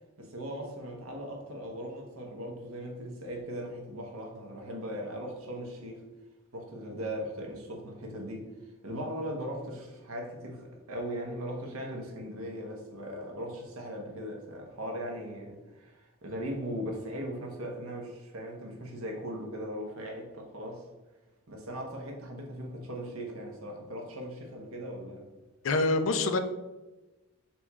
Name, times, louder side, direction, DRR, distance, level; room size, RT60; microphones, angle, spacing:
voice 1, 0.2-6.0 6.5-20.9 21.5-25.3, equal, 75° right, 0.9 m, -39 dB
voice 2, 25.6-26.4, left 3 dB, 65° left, 0.4 m, -25 dB
4.3 x 2.3 x 4.2 m
head